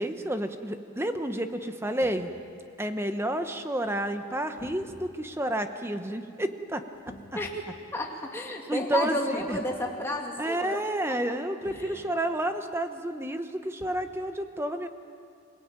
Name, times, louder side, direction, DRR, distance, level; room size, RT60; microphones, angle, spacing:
voice 1, 0.0-2.3 2.8-6.8 8.7-9.6 10.4-14.9, right 1 dB, 10° right, 7 dB, 1.0 m, -30 dB
sound 1, 2.0-2.3 4.6-5.1 6.9-7.8 9.4-10.0 11.6-12.1 13.8-14.2, left 1 dB, 35° left, 2.1 m, -48 dB
voice 2, 7.9-11.1 11.7-12.0, left 1 dB, 10° left, -1 dB, 2.4 m, -32 dB
27.5 x 18.0 x 9.0 m, 2.4 s
head